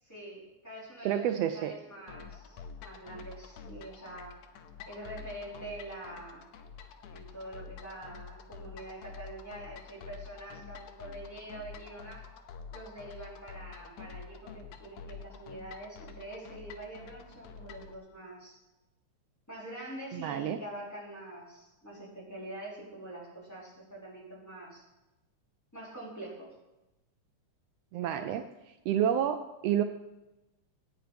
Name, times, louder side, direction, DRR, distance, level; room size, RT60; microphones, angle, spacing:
voice 1, 0.0-4.4 4.9-6.4 7.1-12.3 12.7-18.6 19.5-24.8 25.7-26.5 28.0-28.3, right 1 dB, 5° left, -7 dB, 4.3 m, -45 dB
voice 2, 1.0-1.7 20.1-20.6 27.9-28.4 28.9-29.8, right 10 dB, 85° right, 8 dB, 1.4 m, -29 dB
sound 1, 2.1-17.9, left 6 dB, 75° left, 2.2 m, -48 dB
15.5 x 9.0 x 5.1 m, 0.99 s
omnidirectional pair, 3.5 m